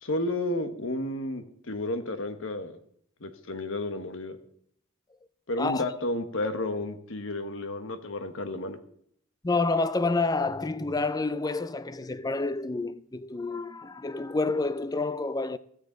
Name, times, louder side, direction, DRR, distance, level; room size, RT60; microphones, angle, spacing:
voice 1, 0.0-2.8 3.2-4.4 5.5-8.8, left 1 dB, 65° left, 1.3 m, -32 dB
voice 2, 9.4-15.6, left 3 dB, 20° left, 0.4 m, -28 dB
16.5 x 13.0 x 3.9 m
head